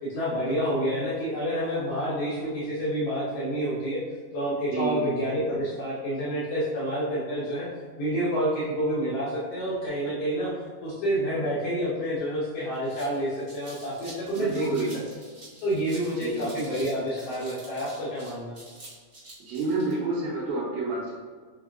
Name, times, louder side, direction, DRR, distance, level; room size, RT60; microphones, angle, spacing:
voice 1, 0.0-4.0 4.3-7.7 8.0-10.5 10.8-14.9 15.6-18.5, equal, 70° left, -7 dB, 1.4 m, -28 dB
voice 2, 4.7-5.0 14.4-14.9 16.2-16.5 19.5-21.1, right 3 dB, 85° right, -6 dB, 2.6 m, -29 dB
sound 1, 12.6-19.9, right 2 dB, 50° right, 0.9 m, -47 dB
5.5 x 3.4 x 2.5 m, 1.5 s
omnidirectional pair, 3.9 m